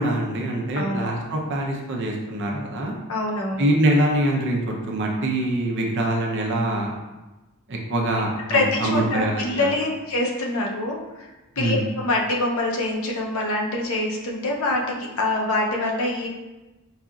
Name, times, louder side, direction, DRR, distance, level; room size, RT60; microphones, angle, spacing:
voice 1, 0.0-2.9 3.6-6.9 7.7-9.7 11.6-11.8, right 1 dB, 55° right, 0 dB, 0.6 m, -24 dB
voice 2, 0.7-1.1 3.1-3.7 8.5-11.3 11.6-16.3, left 2 dB, 65° left, -1 dB, 0.6 m, -25 dB
4.8 x 2.7 x 2.4 m, 1.1 s
head